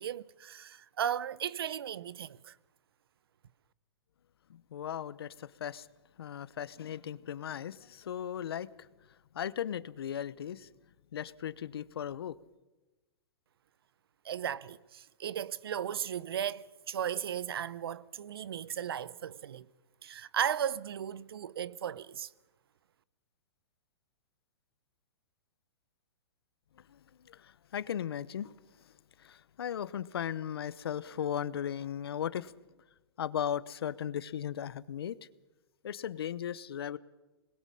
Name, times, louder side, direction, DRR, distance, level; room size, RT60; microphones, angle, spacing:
voice 1, 0.0-2.5 14.2-19.7 20.0-22.3, right 9 dB, 65° right, 0.8 m, -36 dB
voice 2, 4.5-5.9 6.2-8.7 9.3-10.7 11.1-12.4 27.3-28.5 29.2-32.5 33.2-35.2 35.8-37.0, left 9 dB, 70° left, 0.9 m, -37 dB
26.0 x 21.0 x 5.6 m
hypercardioid pair, 180°, 13 cm